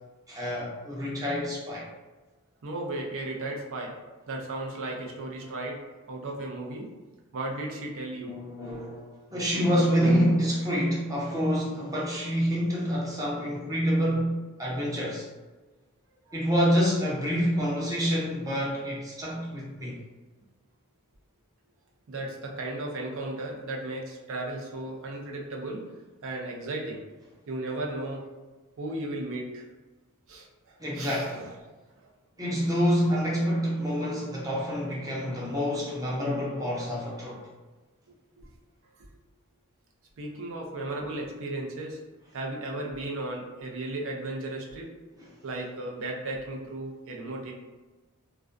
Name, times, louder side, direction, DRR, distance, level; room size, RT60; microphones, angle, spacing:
voice 1, 0.3-1.9 8.2-15.3 16.3-20.0 30.8-31.5 32.4-37.4 45.2-45.3, equal, 15° right, -4 dB, 0.6 m, -27 dB
voice 2, 2.6-4.0 4.3-6.9 7.3-8.3 22.1-25.9 26.2-27.0 27.5-28.2 28.8-29.6 30.3-30.5 30.9-31.5 40.2-42.0 42.3-44.9 45.4-47.5, right 2 dB, 65° right, 0 dB, 0.5 m, -35 dB
2.3 x 2.1 x 2.4 m, 1.2 s
head